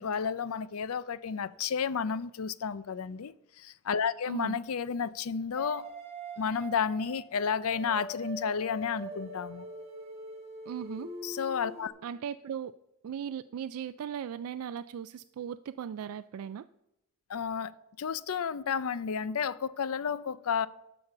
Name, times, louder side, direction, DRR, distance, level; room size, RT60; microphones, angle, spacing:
voice 1, 0.0-5.9 6.4-9.6 11.2-11.9 17.3-17.7 18.0-20.7, left 6 dB, 70° left, 0.5 m, -32 dB
voice 2, 4.3-4.6 10.7-11.1 12.0-12.7 13.0-16.7, right 8 dB, 70° right, 0.3 m, -38 dB
sound 1, 5.6-11.9, right 1 dB, 30° right, 1.8 m, -43 dB
12.5 x 5.3 x 6.7 m
head